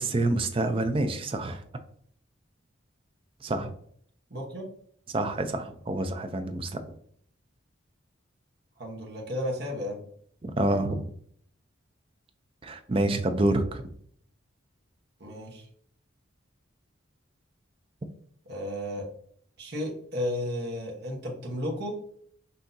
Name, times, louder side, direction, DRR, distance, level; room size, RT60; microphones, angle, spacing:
voice 1, 0.0-1.6 3.4-3.7 5.1-6.8 10.4-11.1 12.6-13.8, right 2 dB, 25° right, 8 dB, 0.4 m, -27 dB
voice 2, 4.3-4.7 8.8-10.0 15.2-15.7 18.5-19.1 19.6-22.0, left 1 dB, 55° right, -1 dB, 1.1 m, -33 dB
5.8 x 2.8 x 2.6 m, 0.63 s
head